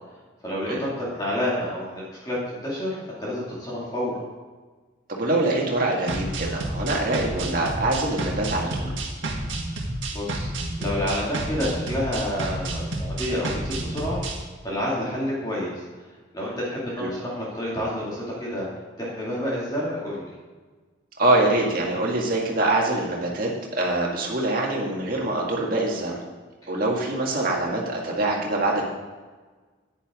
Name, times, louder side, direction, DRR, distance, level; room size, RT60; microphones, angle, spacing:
voice 1, 0.4-4.2 9.8-10.5 10.8-14.2 14.6-15.7 16.3-18.7 19.0-20.3, left 1 dB, 20° left, -6 dB, 2.3 m, -29 dB
voice 2, 5.1-8.9 17.0-17.1 21.2-26.2 26.7-28.8, right 2 dB, 45° right, -2 dB, 1.9 m, -24 dB
sound 1, 6.1-14.4, right 1 dB, 65° right, 1.7 m, -30 dB
10.0 x 9.9 x 3.7 m, 1.4 s
head